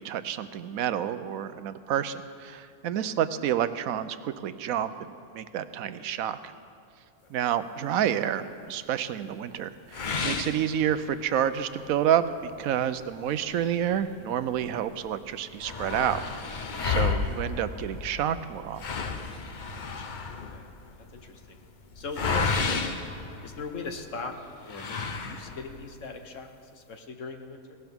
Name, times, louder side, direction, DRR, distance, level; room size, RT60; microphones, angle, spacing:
voice 1, 0.0-6.5 7.3-16.5 16.8-18.8, right 10 dB, 75° right, 12 dB, 1.0 m, -29 dB
sound 1, 9.9-11.4 11.8-11.9 12.4-12.5 13.3-14.6 14.9-15.0 15.2-24.0 24.7-25.8, left 5 dB, 45° left, 0.7 m, -32 dB
voice 2, 19.7-21.6 21.9-22.9 23.4-27.6, left 4 dB, 60° left, 5 dB, 1.4 m, -40 dB
18.0 x 17.5 x 3.6 m, 2.5 s
omnidirectional pair, 1.6 m